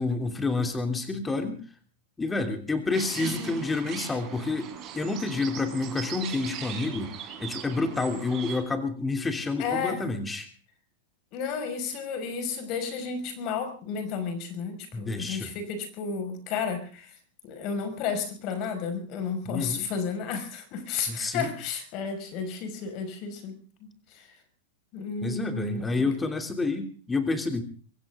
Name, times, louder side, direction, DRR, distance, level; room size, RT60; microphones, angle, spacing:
voice 1, 0.0-1.6 2.2-7.1 7.4-10.5 14.9-15.5 19.4-19.8 21.1-21.5 25.2-27.6, left 3 dB, 10° left, 7 dB, 3.0 m, -29 dB
sound 1, 2.9-8.6, right 9 dB, 30° right, 5.2 m, -40 dB
voice 2, 3.2-3.6 9.6-10.0 11.3-17.1 17.4-23.6 24.1-24.3 24.9-26.1, left 5 dB, 40° left, 8 dB, 5.5 m, -32 dB
24.0 x 16.0 x 3.7 m, 0.40 s
supercardioid pair, 140°, 0 cm